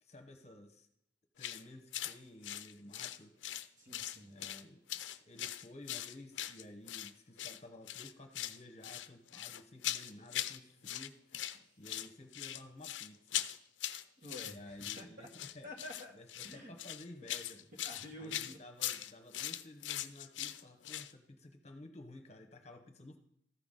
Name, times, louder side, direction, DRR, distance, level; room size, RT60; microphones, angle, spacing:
voice 1, 0.0-0.9 1.4-3.4 4.3-4.8 5.2-13.4 14.4-15.7 16.1-17.6 18.2-23.2, left 1 dB, 35° left, 5 dB, 1.0 m, -53 dB
sound 1, 1.4-1.6 1.9-2.2 2.4-3.7 3.9-4.6 4.9-7.1 7.4-7.6 7.9-8.6 8.8-10.6 10.8-11.6 11.8-21.1, left 13 dB, 90° left, 0.5 m, -40 dB
voice 2, 3.8-4.3 14.2-15.3 15.6-16.1 16.4-16.7 17.8-18.6, left 1 dB, 45° right, 1 dB, 1.8 m, -49 dB
14.0 x 5.9 x 3.8 m, 0.72 s
head